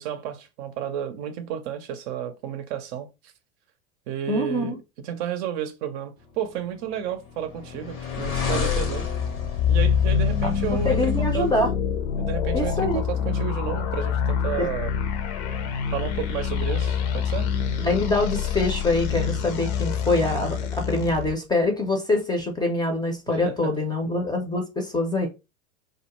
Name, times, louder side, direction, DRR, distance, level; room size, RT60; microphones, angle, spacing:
voice 1, 0.0-3.1 4.1-4.8 5.0-9.1 9.7-11.5 12.2-14.9 15.9-17.5 23.3-23.7, right 9 dB, 55° right, 0.6 m, -32 dB
voice 2, 4.3-4.8 10.4-10.5 10.8-11.7 12.5-13.0 14.6-14.7 17.8-25.3, left 2 dB, 10° left, 0.5 m, -24 dB
sound 1, 6.7-11.6, left 5 dB, 80° left, 1.0 m, -33 dB
sound 2, 8.1-21.3, left 7 dB, 55° left, 0.6 m, -26 dB
2.4 x 2.1 x 2.9 m
hypercardioid pair, 95°, 41 cm